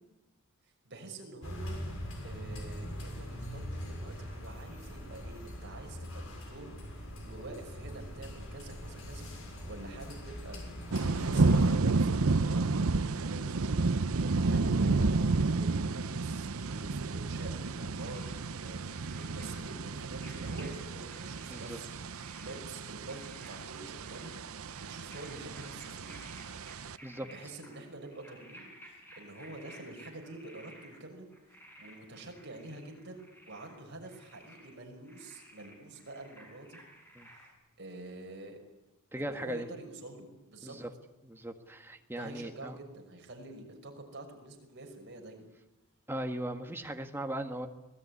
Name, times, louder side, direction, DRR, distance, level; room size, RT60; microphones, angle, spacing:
voice 1, 0.8-1.8 2.2-10.6 11.0-12.7 13.0-13.6 14.2-15.2 15.5-26.2 27.2-31.3 31.8-36.8 37.3-37.5 37.8-38.6 39.2-40.8 42.1-45.5, right 2 dB, 55° right, 2 dB, 5.9 m, -47 dB
sound 1, 1.4-11.8, equal, 70° left, 6.6 m, -42 dB
sound 2, 10.9-27.0, right 3 dB, 80° right, 0.8 m, -31 dB
sound 3, 17.9-20.7 21.0-21.8 22.0-31.0 31.3-34.8 35.0-37.5, equal, 10° left, 7.6 m, -55 dB
voice 2, 39.1-39.7 40.6-40.9 41.2-42.8 46.1-47.7, right 1 dB, 10° right, 5 dB, 1.7 m, -38 dB
25.5 x 18.5 x 9.7 m, 0.97 s
head